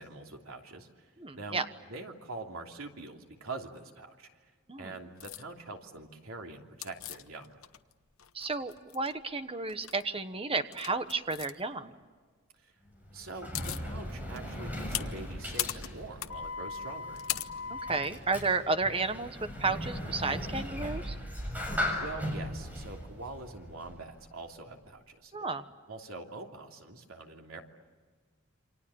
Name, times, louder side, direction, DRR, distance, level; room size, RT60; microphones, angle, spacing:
voice 1, 0.0-7.5 12.5-12.7 13.1-17.2 22.0-25.3 25.9-27.6, right 3 dB, 90° right, 2 dB, 3.0 m, -44 dB
voice 2, 1.2-1.6 4.7-4.9 8.3-11.9 17.7-21.2 25.3-25.6, right 3 dB, 25° right, 10 dB, 1.3 m, -32 dB
sound 1, 5.2-5.4 6.8-7.9 8.2-9.1 9.7-10.0 10.7-11.5 13.0-13.1 13.3-13.9 14.3-18.1, left 9 dB, 85° left, 1.0 m, -38 dB
Sliding door, 12.9-24.3, equal, 10° right, 7.0 m, -38 dB
28.5 x 25.5 x 7.2 m, 1.5 s
head